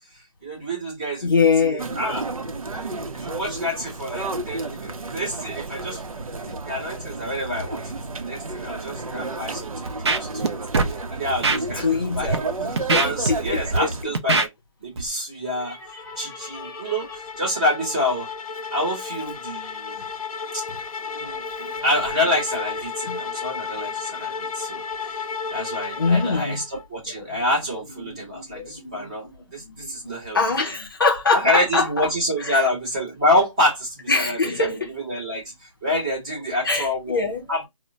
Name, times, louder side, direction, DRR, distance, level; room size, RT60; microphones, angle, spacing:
voice 1, 0.4-2.3 3.1-6.0 6.4-7.8 8.2-10.5 11.1-12.4 12.9-14.5 14.8-15.8 16.2-18.3 18.7-20.0 20.5-20.6 21.8-25.2 25.5-30.4 31.3-35.5 35.8-37.2 37.5-37.7, left 1 dB, 15° right, 0.8 m, -27 dB
voice 2, 1.2-2.0 11.8-13.6 15.7-16.8 21.2-21.8 23.1-23.2 26.0-26.6 28.2-29.0 29.8-29.9 30.3-31.9 32.4-32.6 34.1-34.9 36.6-37.6, left 4 dB, 40° left, 0.5 m, -24 dB
sound 1, 1.8-14.0, right 3 dB, 90° right, 0.7 m, -32 dB
Scratching (performance technique), 9.9-10.5 10.7-10.9 11.4-11.6 12.1-12.3 12.8-13.8 14.1-14.5 15.0-15.1, right 3 dB, 50° right, 0.5 m, -21 dB
sound 2, 15.5-26.9, left 5 dB, 85° left, 0.4 m, -33 dB
2.2 x 2.1 x 3.7 m
figure-of-eight pair, 170°, 18 cm